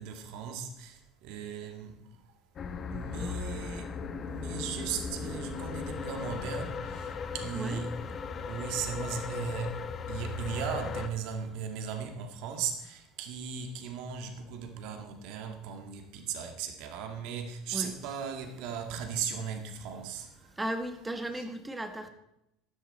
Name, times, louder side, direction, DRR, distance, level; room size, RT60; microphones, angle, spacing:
voice 1, 0.0-1.9 2.9-3.9 4.3-7.9 8.5-9.8 10.1-20.3, right 7 dB, 70° right, 2.0 m, -37 dB
sound 1, 2.6-11.1, left 5 dB, 35° left, 1.1 m, -37 dB
voice 2, 3.1-3.4 7.1-7.8 8.3-8.6 17.7-17.9 20.5-22.1, right 1 dB, 10° right, 1.5 m, -37 dB
15.0 x 11.0 x 4.3 m
supercardioid pair, 125°, 0 cm